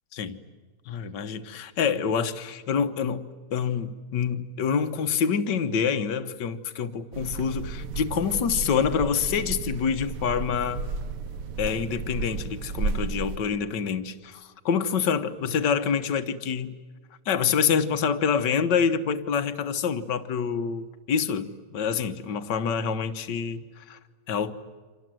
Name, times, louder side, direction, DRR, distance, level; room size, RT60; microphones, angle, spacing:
voice 1, 0.1-0.4 0.9-10.9 11.6-16.8 17.2-24.0 24.3-24.5, left 6 dB, 60° left, 1.8 m, -27 dB
sound 1, 7.1-13.4, right 4 dB, 50° right, 1.2 m, -33 dB
29.5 x 26.5 x 7.7 m
omnidirectional pair, 2.2 m